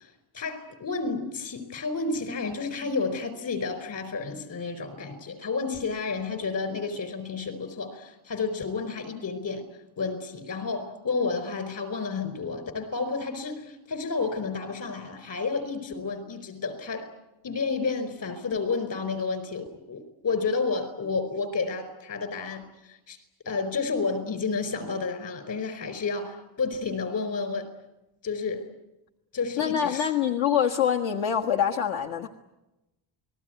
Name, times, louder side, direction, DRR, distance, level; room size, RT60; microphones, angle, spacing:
voice 1, 0.0-9.7 10.0-17.1 17.4-23.2 23.4-27.7 28.2-28.7 29.3-30.1, left 4 dB, 40° left, 11 dB, 4.8 m, -31 dB
voice 2, 29.6-32.3, left 8 dB, 75° left, 4 dB, 1.7 m, -25 dB
29.0 x 20.5 x 9.4 m, 0.98 s
cardioid pair, 160°, 48 cm